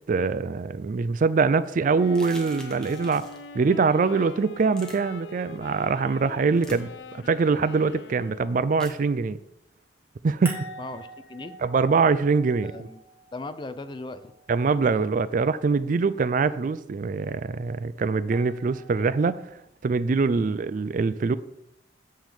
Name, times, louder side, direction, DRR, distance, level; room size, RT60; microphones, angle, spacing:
voice 1, 0.1-3.2 3.5-9.4 10.2-10.6 11.6-12.7 14.5-19.4 19.8-21.4, right 4 dB, 50° right, 15 dB, 0.4 m, -23 dB
sound 1, 1.9-8.7, left 4 dB, 85° left, 0.4 m, -44 dB
sound 2, 2.0-6.9 10.5-14.6 18.3-19.5, right 2 dB, 15° right, 1.5 m, -46 dB
sound 3, 2.1-3.4 4.7-4.9 6.6-6.8 8.8-9.0, equal, 5° left, 1.2 m, -45 dB
voice 2, 10.8-11.6 12.6-13.0 13.3-14.2 20.3-20.5, left 2 dB, 25° left, 12 dB, 0.4 m, -38 dB
8.9 x 3.8 x 6.9 m, 0.83 s
head